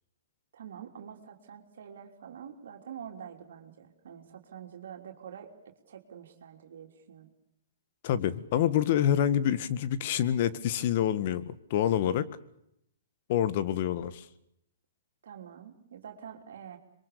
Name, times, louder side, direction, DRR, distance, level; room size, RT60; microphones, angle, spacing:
voice 1, 0.5-7.3 15.2-16.8, right 8 dB, 75° right, 2 dB, 3.4 m, -46 dB
voice 2, 8.0-12.3 13.3-14.3, left 10 dB, 50° left, 14 dB, 1.7 m, -27 dB
26.5 x 23.0 x 6.9 m, 0.78 s
hypercardioid pair, 140°, 0 cm